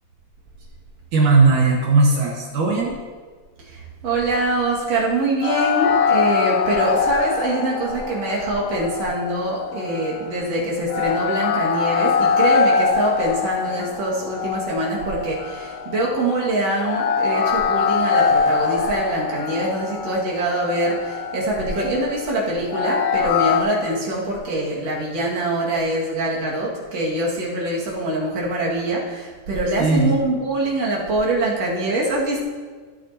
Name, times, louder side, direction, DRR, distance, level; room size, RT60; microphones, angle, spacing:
voice 1, 1.1-2.9 29.8-30.1, right 3 dB, 65° right, -2 dB, 2.6 m, -17 dB
voice 2, 3.6-32.4, right 1 dB, 50° right, -5 dB, 3.1 m, -24 dB
sound 1, 5.4-23.6, left 6 dB, 70° left, 2.3 m, -23 dB
18.0 x 8.4 x 3.0 m, 1.5 s
omnidirectional pair, 4.1 m